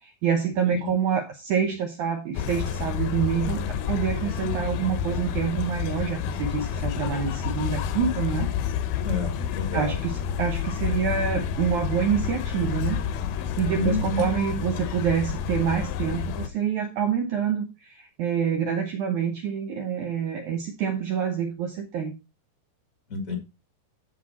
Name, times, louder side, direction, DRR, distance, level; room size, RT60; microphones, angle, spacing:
voice 1, 0.0-8.5 9.7-13.0 13.3-22.1, right 7 dB, 75° right, 5 dB, 1.8 m, -27 dB
sound 1, 2.3-16.5, left 8 dB, 75° left, 2.5 m, -29 dB
voice 2, 9.0-9.9 13.8-14.3 23.1-23.4, left 3 dB, 50° left, 4 dB, 1.0 m, -29 dB
13.5 x 4.6 x 4.1 m, 0.27 s
omnidirectional pair, 4.7 m